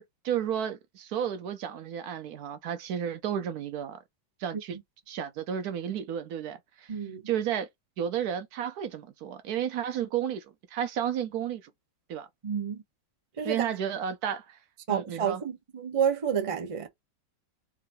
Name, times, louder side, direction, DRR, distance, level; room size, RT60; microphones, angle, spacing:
voice 1, 0.0-4.0 4.4-4.8 5.1-7.0 7.3-7.7 8.0-10.5 10.7-11.7 12.1-12.3 13.4-14.6 14.9-15.4, right 9 dB, 70° right, 1.0 m, -32 dB
voice 2, 6.9-7.2 12.4-12.8 13.4-13.6 14.9-16.9, right 8 dB, 50° right, 0.4 m, -29 dB
3.7 x 2.6 x 4.5 m
omnidirectional pair, 1.9 m